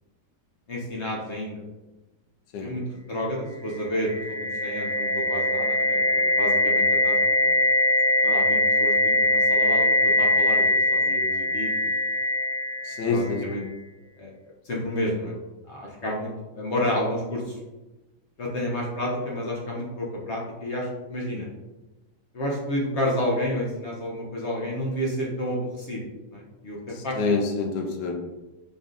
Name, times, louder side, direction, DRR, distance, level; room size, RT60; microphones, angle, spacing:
voice 1, 0.7-1.6 2.6-2.8 3.1-7.2 7.4-7.6 8.2-11.9 13.0-13.7 14.2-14.3 14.6-15.3 15.7-17.6 18.4-21.5 22.3-26.0 26.3-27.2, left 1 dB, 55° left, -3 dB, 0.8 m, -30 dB
sound 1, 3.7-13.6, left 1 dB, 35° right, 0.4 m, -22 dB
voice 2, 12.8-13.6 26.9-28.2, left 4 dB, 75° left, 3 dB, 1.2 m, -27 dB
4.0 x 3.3 x 2.5 m, 1.1 s
omnidirectional pair, 1.9 m